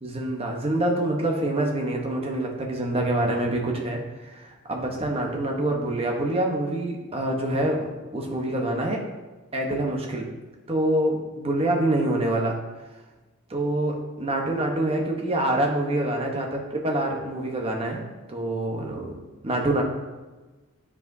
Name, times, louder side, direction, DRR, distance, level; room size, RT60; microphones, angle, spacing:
voice 1, 0.0-9.0 9.5-10.3 10.7-12.6 13.5-18.0 18.3-19.8, right 1 dB, 25° right, 1 dB, 1.0 m, -26 dB
10.0 x 4.9 x 2.7 m, 1.2 s
head